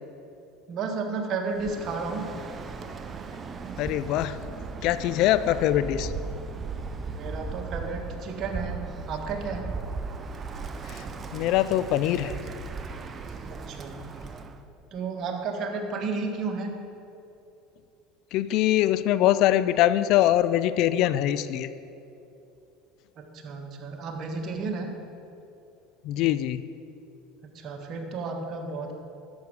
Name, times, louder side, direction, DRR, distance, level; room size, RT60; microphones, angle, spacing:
voice 1, 0.7-2.3 7.1-9.7 13.7-14.0 14.9-16.7 23.2-24.9 27.5-28.9, right 4 dB, 50° right, 3 dB, 1.5 m, -32 dB
Bird, 1.5-14.6, right 4 dB, 30° right, 0.7 m, -37 dB
voice 2, 3.8-4.4 4.8-6.1 10.9-11.0 11.3-12.3 18.3-21.7 26.0-26.6, left 13 dB, 60° left, 14 dB, 0.4 m, -23 dB
11.0 x 7.7 x 4.9 m, 2.7 s
hypercardioid pair, 75°, 0 cm